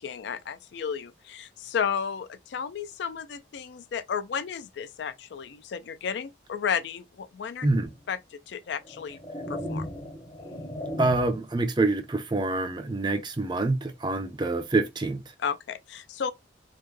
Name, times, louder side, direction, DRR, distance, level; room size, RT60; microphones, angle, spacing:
voice 1, 0.0-7.7 8.1-9.2 9.5-9.9 15.4-16.3, left 7 dB, 60° left, 0.3 m, -33 dB
sound 1, 7.8-8.0 8.7-11.5, equal, 20° left, 0.7 m, -36 dB
voice 2, 11.0-15.2, right 2 dB, 25° right, 0.4 m, -26 dB
3.4 x 2.1 x 3.1 m
head